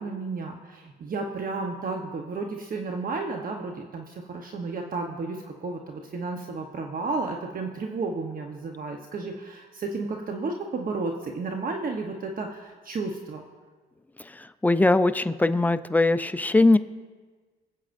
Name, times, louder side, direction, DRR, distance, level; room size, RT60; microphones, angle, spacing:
voice 1, 0.0-13.4, right 3 dB, 45° right, 2 dB, 0.9 m, -32 dB
voice 2, 14.6-16.8, left 2 dB, 10° left, 12 dB, 0.4 m, -20 dB
25.0 x 8.3 x 2.6 m, 1.4 s
cardioid pair, 90°, 20 cm